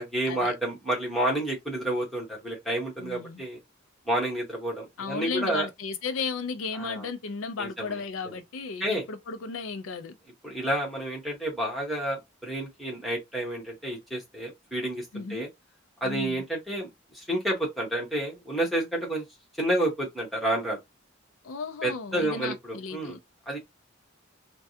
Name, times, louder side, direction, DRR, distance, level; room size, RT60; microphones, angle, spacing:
voice 1, 0.0-3.6 4.1-5.6 6.7-7.1 7.6-8.0 8.8-9.0 10.4-15.5 16.0-16.9 17.1-19.2 19.6-20.8 21.8-23.2 23.5-23.6, right 1 dB, ahead, 1.2 m, -30 dB
voice 2, 3.0-3.4 5.0-10.2 15.1-15.4 16.0-16.4 21.4-23.2, left 4 dB, 90° left, 0.5 m, -34 dB
3.3 x 2.2 x 2.7 m
head